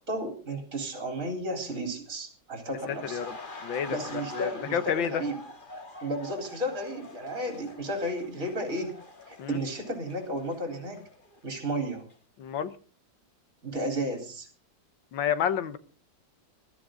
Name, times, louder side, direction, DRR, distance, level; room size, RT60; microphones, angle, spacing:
voice 1, 0.0-3.2 3.9-5.4 6.0-8.9 9.3-11.0 11.4-12.1 13.6-14.5, right 1 dB, 45° right, 4 dB, 4.2 m, -33 dB
sound 1, 2.8-11.6 11.9-12.1, left 1 dB, 30° left, 1.9 m, -46 dB
voice 2, 2.9-3.4 3.6-4.0 4.3-5.2 9.4-9.6 12.4-12.7 15.1-15.8, left 8 dB, 90° left, 12 dB, 1.8 m, -29 dB
20.5 x 13.0 x 3.9 m, 0.38 s
omnidirectional pair, 2.0 m